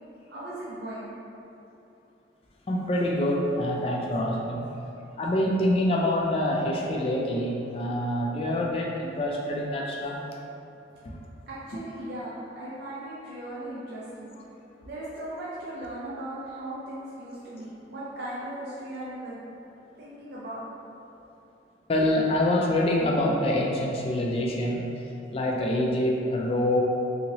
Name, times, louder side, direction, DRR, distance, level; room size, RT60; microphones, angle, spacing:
voice 1, 0.3-1.1 11.5-14.3 14.8-19.4 20.0-20.6, right 1 dB, 70° right, -8 dB, 0.5 m, -38 dB
voice 2, 2.7-4.6 5.2-10.2 11.0-11.1 21.9-24.9 25.3-26.8, left 1 dB, 35° left, -1 dB, 0.3 m, -26 dB
2.8 x 2.7 x 2.9 m, 2.8 s
head